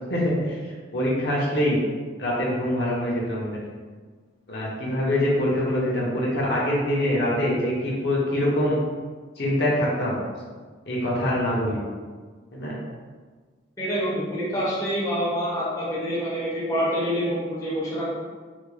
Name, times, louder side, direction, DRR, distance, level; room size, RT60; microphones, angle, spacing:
voice 1, 0.1-1.8 2.2-3.6 4.5-8.8 9.4-10.2 10.9-11.8 12.5-12.8, left 1 dB, 60° left, -5 dB, 0.8 m, -24 dB
voice 2, 13.8-18.0, equal, 15° left, -8 dB, 0.6 m, -26 dB
3.5 x 2.2 x 3.1 m, 1.5 s
head